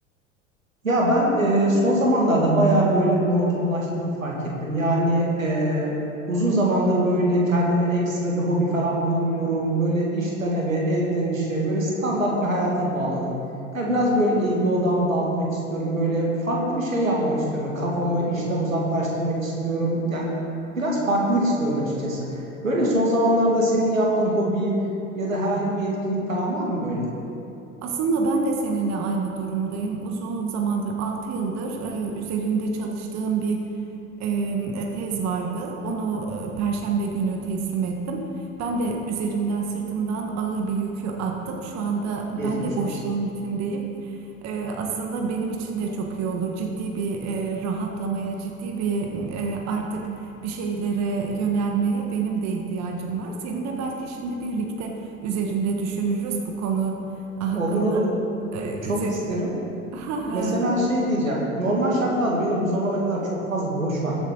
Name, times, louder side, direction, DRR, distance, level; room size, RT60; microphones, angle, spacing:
voice 1, 0.8-4.3 4.6-6.0 6.3-13.3 13.7-20.4 20.8-24.8 25.1-27.1 42.4-42.9 57.5-58.1 58.9-59.5 60.3-64.2, right 1 dB, 85° right, -3 dB, 2.5 m, -23 dB
voice 2, 27.8-33.6 34.2-57.0 57.4-58.0 58.5-59.1 59.9-60.6, right 4 dB, 45° right, 1 dB, 1.6 m, -27 dB
21.5 x 8.0 x 4.0 m, 2.8 s
figure-of-eight pair, 70°, 39 cm